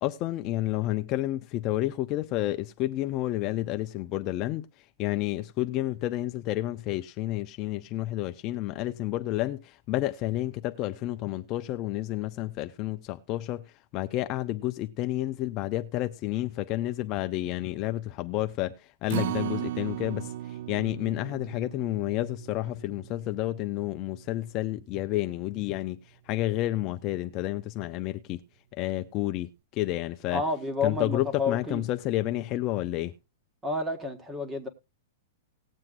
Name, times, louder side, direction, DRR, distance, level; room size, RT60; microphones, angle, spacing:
voice 1, 0.0-4.7 5.0-13.6 13.9-26.0 26.3-28.4 28.7-30.4 30.8-33.1, left 15 dB, 30° left, 0.5 m, -30 dB
Acoustic guitar, 19.1-25.4 25.8-25.9 26.3-26.4, right 13 dB, 55° right, 0.4 m, -37 dB
voice 2, 30.3-31.8 33.6-34.7, left 3 dB, 10° right, 1.5 m, -30 dB
19.0 x 7.5 x 2.5 m
hypercardioid pair, 155°, 0 cm